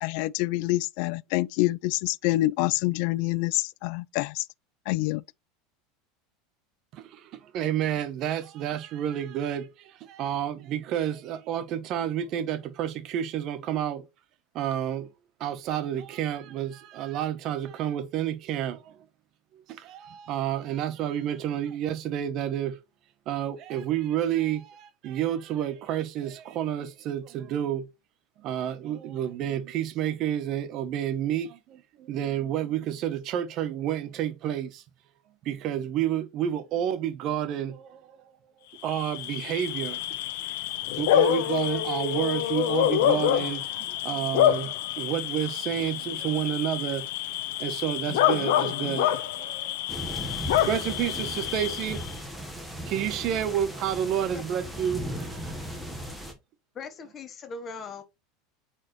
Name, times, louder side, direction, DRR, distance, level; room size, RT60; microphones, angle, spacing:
voice 1, 0.0-4.4 4.9-5.2, left 19 dB, 50° left, 0.3 m, -26 dB
voice 2, 6.9-14.0 14.5-15.1 15.4-19.0 19.7-22.8 23.3-27.8 28.4-34.8 35.4-38.0 38.8-40.0 40.9-47.1 47.6-49.7 50.1-50.3 50.6-52.0 52.9-55.8, right 10 dB, 35° right, 1.0 m, -30 dB
Bark / Cricket, 38.8-52.1, left 12 dB, 70° left, 0.9 m, -27 dB
sound 1, 49.9-56.3, equal, ahead, 1.3 m, -37 dB
voice 3, 56.7-58.0, left 4 dB, 20° left, 1.1 m, -40 dB
8.4 x 4.6 x 3.1 m
supercardioid pair, 175°, 0 cm